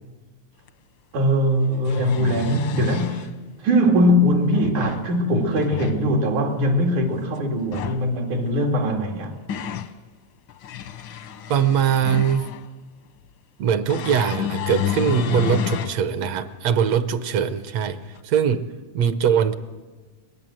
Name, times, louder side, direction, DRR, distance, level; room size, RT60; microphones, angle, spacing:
sound 1, 0.7-0.8 1.6-3.3 4.3-5.1 5.5-6.0 7.6-8.0 9.0-9.9 10.5-12.7 13.9-16.0 16.5-16.6 18.1-18.2, left 9 dB, 75° left, 1.1 m, -30 dB
voice 1, 1.1-3.3 3.6-9.3, equal, 85° right, 3.8 m, -21 dB
voice 2, 11.5-12.5 13.6-18.7 19.0-19.5, right 8 dB, 70° right, 1.9 m, -21 dB
23.5 x 19.5 x 7.7 m
omnidirectional pair, 3.3 m